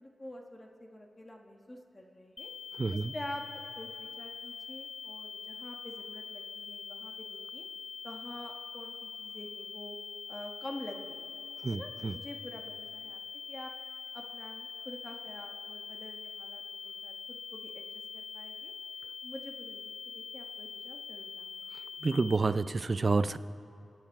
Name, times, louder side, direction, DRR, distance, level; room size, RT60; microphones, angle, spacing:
voice 1, 0.0-2.5 2.9-3.4 3.8-7.7 8.0-10.0 10.3-11.3 11.7-13.2 13.5-13.7 14.1-17.8 18.1-18.7 19.2-21.7, left 1 dB, 20° left, 1 dB, 1.3 m, -47 dB
sound 1, 2.4-22.4, left 6 dB, 50° left, 0.6 m, -44 dB
voice 2, 2.7-3.1 11.6-12.2 22.0-23.4, right 3 dB, 45° right, 13 dB, 0.4 m, -29 dB
26.0 x 9.4 x 4.8 m, 2.6 s
wide cardioid pair, 90°, 0 cm